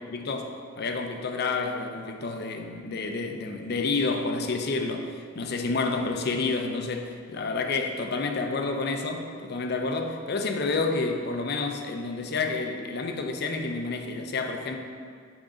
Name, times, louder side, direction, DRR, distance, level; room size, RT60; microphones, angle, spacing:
voice 1, 0.1-5.1 5.3-14.8, left 3 dB, 55° left, 5 dB, 0.5 m, -29 dB
6.2 x 3.7 x 5.0 m, 2.2 s
head